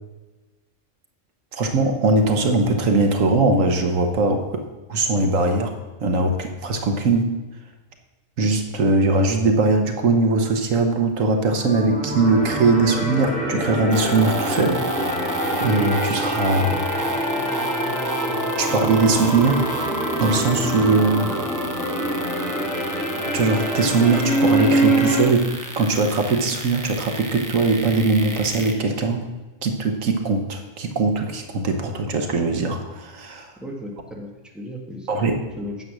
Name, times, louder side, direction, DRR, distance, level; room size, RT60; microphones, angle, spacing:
voice 1, 1.5-7.3 8.4-14.9 15.6-16.7 18.6-19.7 20.2-21.3 23.3-29.3 29.6-33.5 35.1-35.4, right 3 dB, 80° right, 5 dB, 1.4 m, -21 dB
sound 1, 11.5-25.2, right 1 dB, 80° left, 2.4 m, -25 dB
sound 2, 13.9-28.7, right 2 dB, 15° right, 0.8 m, -31 dB
voice 2, 33.6-35.1 35.6-35.8, left 1 dB, ahead, -1 dB, 1.6 m, -35 dB
9.5 x 7.5 x 6.2 m, 1.2 s
omnidirectional pair, 1.3 m